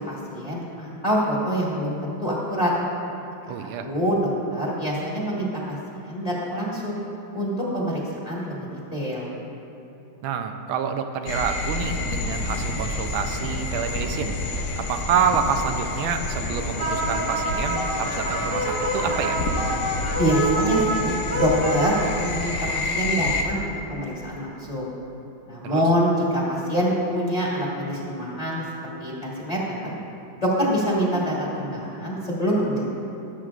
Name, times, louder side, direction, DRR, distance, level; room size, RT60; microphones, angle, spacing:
voice 1, 0.1-2.7 3.5-5.8 6.0-7.0 7.3-8.6 8.9-9.3 20.1-24.9 25.5-28.6 29.0-29.9 30.4-32.8, equal, 20° left, -6 dB, 1.4 m, -25 dB
voice 2, 3.5-3.9 10.2-14.3 14.8-19.4 25.6-25.8, right 7 dB, 90° right, 6 dB, 1.4 m, -27 dB
sound 1, 11.3-23.4, left 2 dB, 85° left, 1.6 m, -29 dB
sound 2, 16.8-21.9, right 1 dB, 25° right, 0.7 m, -27 dB
16.5 x 7.6 x 2.4 m, 2.8 s
omnidirectional pair, 2.2 m